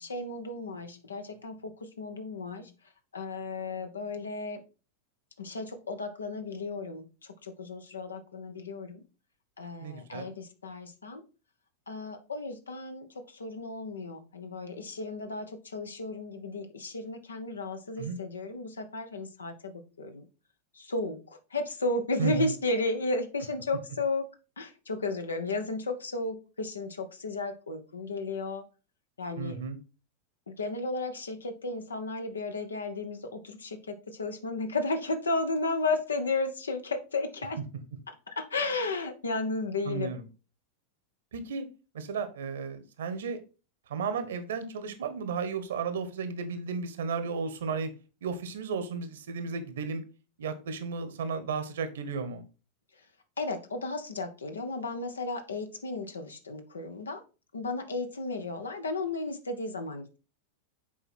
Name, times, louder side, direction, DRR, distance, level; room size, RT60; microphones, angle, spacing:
voice 1, 0.0-2.7 3.1-4.6 5.4-9.0 9.6-11.2 11.9-20.3 20.7-24.3 24.6-28.6 29.2-29.6 30.5-37.6 38.3-40.2 52.9-53.1 53.4-57.2 57.5-60.2, left 3 dB, 75° left, 7 dB, 1.2 m, -34 dB
voice 2, 9.8-10.3 18.0-18.2 22.2-22.5 29.4-29.8 39.8-40.2 41.3-41.7 41.9-43.4 43.9-47.9 48.2-50.0 50.4-52.4, right 5 dB, 60° right, 10 dB, 1.1 m, -34 dB
7.6 x 4.8 x 4.4 m, 0.33 s
figure-of-eight pair, 90°, 0 cm